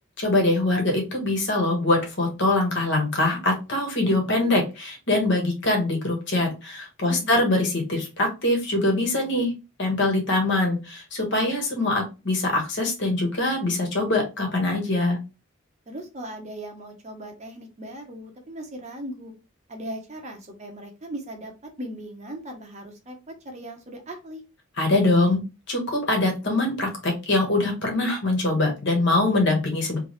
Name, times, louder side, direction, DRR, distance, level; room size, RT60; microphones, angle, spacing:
voice 1, 0.2-9.5 9.8-15.2 24.8-30.0, left 2 dB, 60° left, 1 dB, 1.5 m, -23 dB
voice 2, 7.1-7.4 15.9-19.3 19.7-24.4, right 1 dB, 35° right, 3 dB, 0.9 m, -38 dB
3.3 x 3.3 x 3.1 m, 0.28 s
head